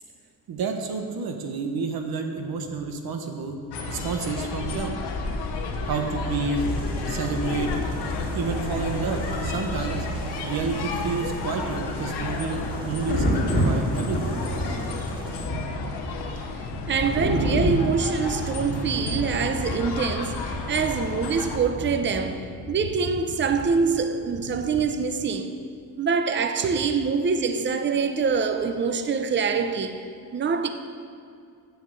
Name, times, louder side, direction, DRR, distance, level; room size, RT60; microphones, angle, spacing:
voice 1, 0.5-3.6 3.9-5.0 5.8-6.6 7.1-7.7 8.3-10.1 10.4-14.4, right 4 dB, 70° right, 1.2 m, -30 dB
sound 1, 3.7-21.6, left 3 dB, 90° left, 1.1 m, -32 dB
sound 2, 6.5-15.5, right 2 dB, 10° right, 2.1 m, -38 dB
Thunder, 11.6-25.3 26.9-27.1, equal, 25° left, 1.7 m, -30 dB
voice 2, 16.9-25.6 26.0-30.7, right 5 dB, 30° right, 0.6 m, -25 dB
7.4 x 7.0 x 7.7 m
cardioid pair, 115°, 39 cm